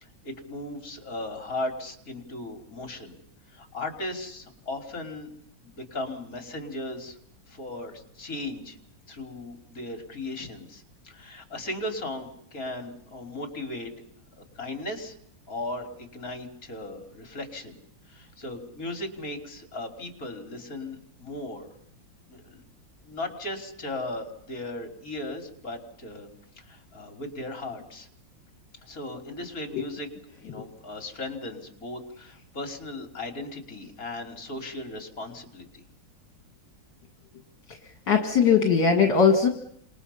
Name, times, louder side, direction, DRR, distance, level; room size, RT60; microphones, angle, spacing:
voice 1, 0.0-3.2 3.5-5.3 5.6-7.2 7.5-8.8 9.1-13.9 14.4-15.2 15.5-17.8 18.1-21.7 22.3-22.6 23.0-26.3 26.6-28.1 28.8-30.1 30.4-35.8, left 2 dB, 45° left, 4 dB, 3.5 m, -37 dB
voice 2, 38.1-39.5, left 6 dB, 65° left, 3 dB, 2.5 m, -20 dB
29.5 x 27.0 x 5.6 m, 0.69 s
omnidirectional pair, 2.1 m